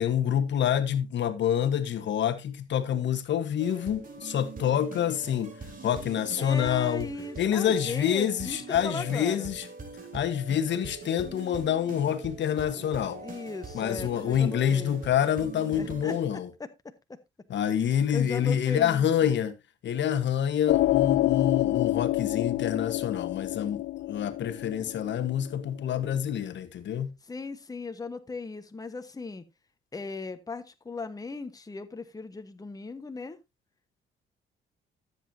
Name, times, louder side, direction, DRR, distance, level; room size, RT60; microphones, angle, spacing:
voice 1, 0.0-5.5 5.8-7.1 7.4-9.7 10.1-13.2 13.7-16.5 17.5-19.5 19.8-23.8 24.1-27.1, left 9 dB, 65° left, 1.1 m, -27 dB
sound 1, 3.6-16.2, right 3 dB, 45° right, 3.5 m, -42 dB
voice 2, 6.4-9.5 13.2-15.0 15.7-16.1 16.8-17.2 17.8-19.3 27.3-29.5 29.9-33.4, left 3 dB, 20° left, 1.1 m, -38 dB
sound 2, 20.7-25.9, left 16 dB, 85° left, 0.5 m, -27 dB
13.5 x 7.9 x 2.7 m
cardioid pair, 90°, 20 cm